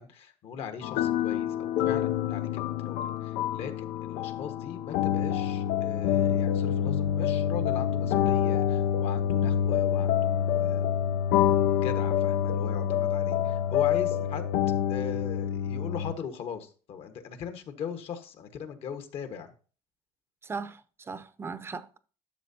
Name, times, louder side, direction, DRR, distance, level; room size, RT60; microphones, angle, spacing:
voice 1, 0.0-10.8 11.8-14.5 14.9-19.5, left 7 dB, 55° left, 1.4 m, -39 dB
sound 1, 0.8-16.1, left 10 dB, 75° left, 0.5 m, -27 dB
voice 2, 20.4-22.0, right 4 dB, 20° right, 0.7 m, -38 dB
12.0 x 6.5 x 2.8 m
cardioid pair, 120°, 12 cm